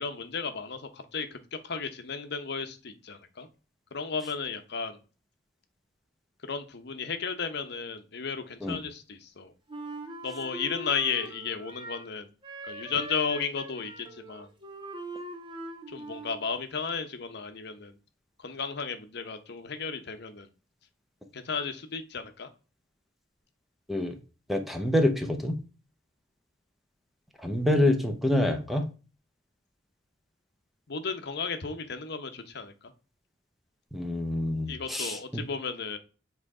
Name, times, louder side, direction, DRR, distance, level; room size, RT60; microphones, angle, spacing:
voice 1, 0.0-3.5 3.9-5.0 6.4-9.5 10.2-12.3 12.6-14.5 15.9-17.9 18.4-20.5 21.3-22.5 30.9-32.7 34.7-36.0, left 5 dB, 60° left, 8 dB, 0.9 m, -34 dB
Wind instrument woodwind instrument, 9.7-12.1 12.4-16.5, right 2 dB, 25° right, 1.0 m, -42 dB
voice 2, 24.5-25.6 27.4-28.8 33.9-35.2, left 1 dB, ahead, 5 dB, 0.8 m, -26 dB
7.7 x 3.2 x 4.8 m, 0.34 s
head